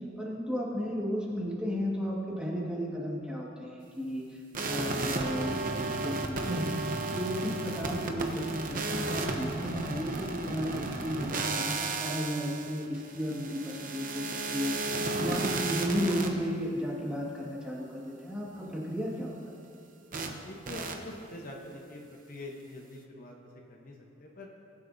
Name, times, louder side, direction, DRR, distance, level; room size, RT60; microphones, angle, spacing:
voice 1, 0.2-4.4 4.6-6.8 7.1-14.7 15.2-19.3, equal, 5° right, -4 dB, 1.7 m, -34 dB
sound 1, 4.5-16.3 20.1-20.3 20.7-20.9, right 3 dB, 40° right, 0.8 m, -33 dB
voice 2, 20.2-22.0 22.3-24.5, left 1 dB, 40° left, 0 dB, 1.0 m, -45 dB
19.5 x 8.2 x 2.7 m, 2.4 s
head